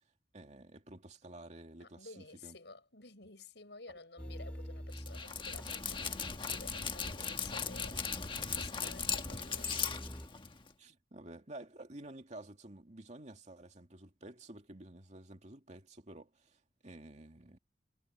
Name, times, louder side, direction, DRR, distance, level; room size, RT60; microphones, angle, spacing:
voice 1, 0.3-2.6 3.9-4.0 10.8-17.6, right 1 dB, 40° right, 2.5 m, -51 dB
voice 2, 1.8-8.0 8.4-9.7, left 3 dB, 75° left, 7.1 m, -53 dB
sound 1, 4.2-7.2 8.5-10.3, equal, 5° left, 3.1 m, -48 dB
Dog, 4.9-10.7, left 6 dB, 30° left, 1.4 m, -38 dB
head